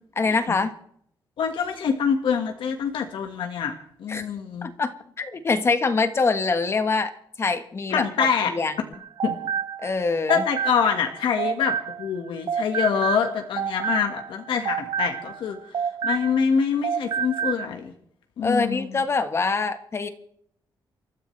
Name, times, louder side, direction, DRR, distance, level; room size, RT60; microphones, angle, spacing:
voice 1, 0.2-0.7 4.1-4.2 4.6-4.9 5.2-7.1 7.4-8.0 8.5-8.7 9.8-10.4 18.4-20.1, left 4 dB, 30° left, 8 dB, 1.4 m, -24 dB
voice 2, 1.4-3.7 4.0-4.7 7.9-8.5 9.2-9.4 10.3-15.6 16.0-17.9 18.4-19.0, left 7 dB, 85° left, 4 dB, 1.7 m, -25 dB
sound 1, 8.9-12.2 12.5-16.6 16.8-17.7, right 8 dB, 60° right, 0.6 m, -29 dB
28.5 x 14.0 x 3.4 m, 0.65 s
wide cardioid pair, 155°, 8 cm